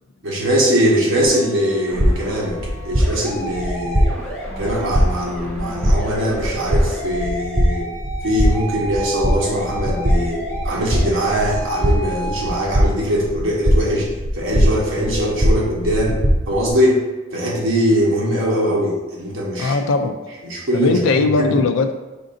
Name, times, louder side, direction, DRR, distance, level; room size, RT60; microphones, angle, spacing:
voice 1, 0.2-4.1 4.6-7.9 8.2-16.2 16.5-17.0 17.3-19.8 20.4-21.0 21.4-21.6, equal, 85° right, -3 dB, 1.1 m, -21 dB
sound 1, 1.2-12.6, equal, 5° left, 1.5 m, -32 dB
sound 2, 1.9-16.7, equal, 20° right, 0.5 m, -21 dB
voice 2, 19.6-20.2 20.7-21.9, left 3 dB, 80° left, 7 dB, 0.4 m, -18 dB
5.1 x 3.8 x 2.6 m, 1.2 s
head